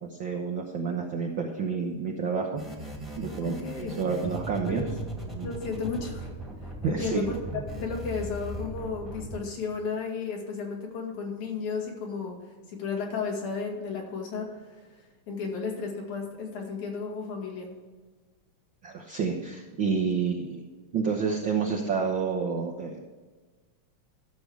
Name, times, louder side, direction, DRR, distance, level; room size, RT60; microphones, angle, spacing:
voice 1, 0.0-2.5 3.2-4.8 5.3-5.5 6.8-7.6 18.8-20.6 20.9-23.0, right 5 dB, 65° right, -1 dB, 1.2 m, -29 dB
sound 1, 2.5-9.4, equal, ahead, 1.4 m, -38 dB
voice 2, 3.4-3.9 4.7-5.0 5.4-6.3 6.8-12.4 12.7-14.8 15.3-17.8, left 4 dB, 75° left, 0 dB, 3.5 m, -33 dB
13.0 x 6.8 x 4.7 m, 1.4 s
omnidirectional pair, 3.5 m